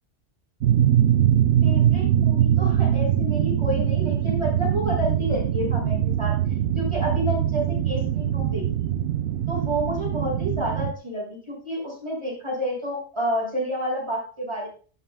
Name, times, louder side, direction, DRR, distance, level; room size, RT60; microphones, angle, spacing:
sound 1, 0.6-10.9, right 10 dB, 75° right, 0.9 m, -22 dB
voice 1, 1.6-6.4 6.7-8.9 9.5-14.7, equal, 25° right, -2 dB, 6.5 m, -29 dB
18.0 x 11.0 x 2.3 m, 0.39 s
omnidirectional pair, 1.2 m